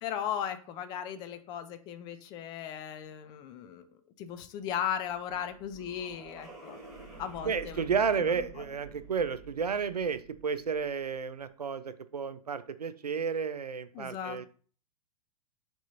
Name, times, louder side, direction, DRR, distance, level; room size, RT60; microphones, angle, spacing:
voice 1, 0.0-3.9 4.2-6.8 7.2-7.9 13.9-14.4, left 9 dB, 20° left, 10 dB, 0.3 m, -36 dB
sound 1, 4.9-11.2, right 4 dB, ahead, 1.4 m, -50 dB
voice 2, 7.4-14.5, right 6 dB, 80° right, 13 dB, 0.4 m, -32 dB
4.1 x 3.5 x 2.9 m, 0.42 s
figure-of-eight pair, 105°, 20 cm